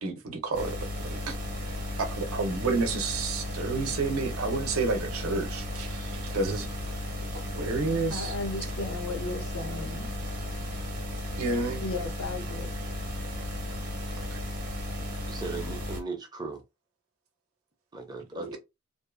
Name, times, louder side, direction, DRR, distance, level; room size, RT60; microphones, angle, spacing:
voice 1, 0.0-1.3 2.0-6.7 7.5-8.4 11.4-11.8 14.3-14.4 18.3-18.6, right 3 dB, 75° right, 0.7 m, -30 dB
sound 1, 0.5-16.0, left 1 dB, 40° right, 0.8 m, -35 dB
voice 2, 8.1-10.2 11.8-12.7, left 3 dB, 75° left, 0.5 m, -35 dB
voice 3, 15.3-16.6 17.9-18.6, right 3 dB, 20° right, 0.5 m, -37 dB
2.6 x 2.3 x 2.4 m
head